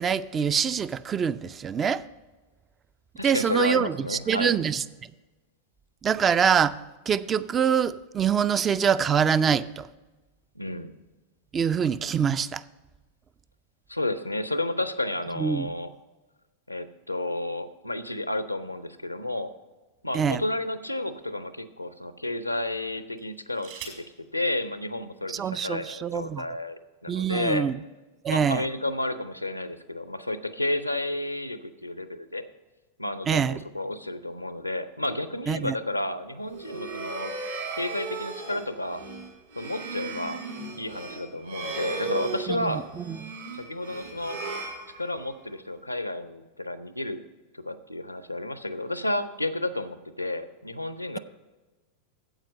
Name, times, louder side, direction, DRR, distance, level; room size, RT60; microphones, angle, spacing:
voice 1, 0.0-2.0 3.2-4.8 6.0-6.8 7.1-9.9 11.5-12.6 15.4-15.7 20.1-20.4 25.3-26.4 27.1-27.8 28.2-28.7 33.3-33.6 35.5-35.7 42.5-43.3, right 7 dB, 25° right, 0.3 m, -25 dB
voice 2, 3.2-4.6 10.6-10.9 13.9-15.9 16.7-19.5 20.0-23.9 24.2-27.7 28.3-32.4 33.0-37.3 37.7-39.0 39.6-40.4 40.8-42.8 43.5-44.4 45.0-47.2 47.5-51.2, left 2 dB, 85° left, 0.6 m, -31 dB
sound 1, 19.4-20.6 21.3-21.5 23.1-24.2 25.3-25.4 25.7-26.1, right 7 dB, 55° right, 2.2 m, -46 dB
sound 2, 36.4-45.5, right 4 dB, 70° right, 2.0 m, -36 dB
8.9 x 7.8 x 5.3 m
figure-of-eight pair, 90°, 0 cm